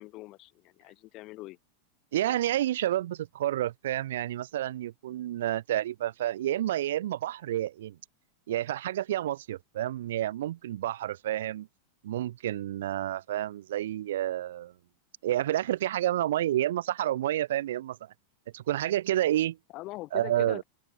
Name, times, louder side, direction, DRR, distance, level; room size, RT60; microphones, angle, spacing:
voice 1, 0.0-1.6 19.7-20.6, left 19 dB, 40° left, 7.9 m, -42 dB
voice 2, 2.1-7.9 8.5-11.7 12.0-14.7 15.2-18.1 18.5-19.6 20.1-20.6, right 13 dB, 60° right, 1.1 m, -29 dB
figure-of-eight pair, 90°, 0 cm